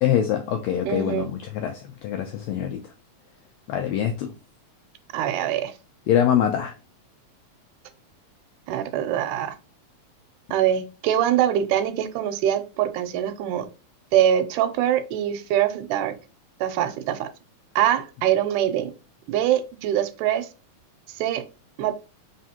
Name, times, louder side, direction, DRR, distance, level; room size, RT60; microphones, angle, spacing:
voice 1, 0.0-2.8 3.7-4.3 6.1-6.7, left 10 dB, 85° left, 1.5 m, -24 dB
voice 2, 0.9-1.3 5.1-5.7 8.7-9.6 10.5-13.7 14.1-16.2 16.6-17.3 17.8-18.9 19.3-20.5 21.1-21.5 21.8-21.9, right 11 dB, 85° right, 2.1 m, -23 dB
4.2 x 3.6 x 2.8 m
omnidirectional pair, 3.6 m